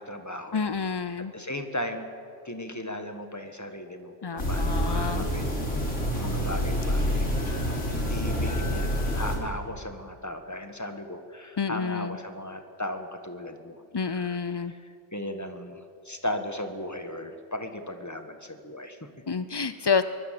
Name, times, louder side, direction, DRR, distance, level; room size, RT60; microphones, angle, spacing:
voice 1, 0.0-2.1 2.4-5.5 6.2-19.1, left 1 dB, 15° left, 6 dB, 1.6 m, -37 dB
voice 2, 0.5-1.3 4.2-5.3 11.6-12.2 13.9-14.7 19.3-20.0, left 5 dB, 40° left, 11 dB, 0.4 m, -28 dB
sound 1, 4.4-9.4, equal, 85° left, 4.0 m, -27 dB
23.5 x 20.0 x 7.7 m, 2.4 s
omnidirectional pair, 1.2 m